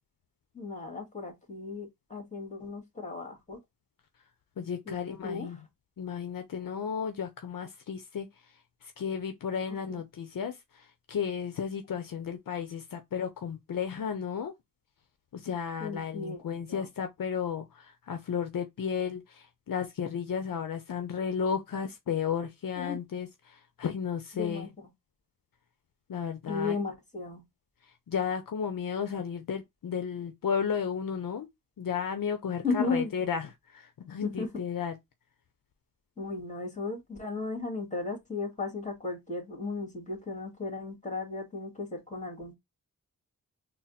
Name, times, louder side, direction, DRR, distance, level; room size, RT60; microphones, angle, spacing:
voice 1, 0.5-3.6 4.9-5.0 5.2-5.5 9.7-10.0 15.8-16.4 16.7-16.9 22.8-23.0 24.3-24.7 26.5-27.4 32.6-33.1 34.2-34.5 36.2-42.6, left 4 dB, 20° left, 1.8 m, -35 dB
voice 2, 4.6-5.6 6.0-8.3 9.0-10.5 11.1-14.5 15.3-24.7 26.1-26.8 28.1-31.5 31.8-34.9, left 7 dB, 70° left, 0.6 m, -33 dB
4.0 x 2.0 x 4.0 m
cardioid pair, 60°, 34 cm